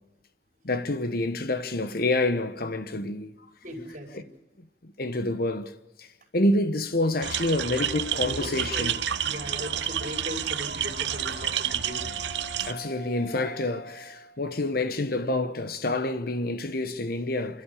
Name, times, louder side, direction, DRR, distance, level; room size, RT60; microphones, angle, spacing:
voice 1, 0.6-3.3 4.1-4.2 4.8-6.1 6.3-9.0 12.6-17.6, left 2 dB, 50° left, 1.0 m, -28 dB
voice 2, 3.6-4.3 8.3-8.9 9.2-12.1, equal, 40° right, 5.0 m, -38 dB
sound 1, 7.0-14.6, left 1 dB, 75° left, 3.4 m, -43 dB
sound 2, 7.2-12.7, right 10 dB, 70° right, 0.8 m, -30 dB
28.0 x 12.5 x 8.4 m
head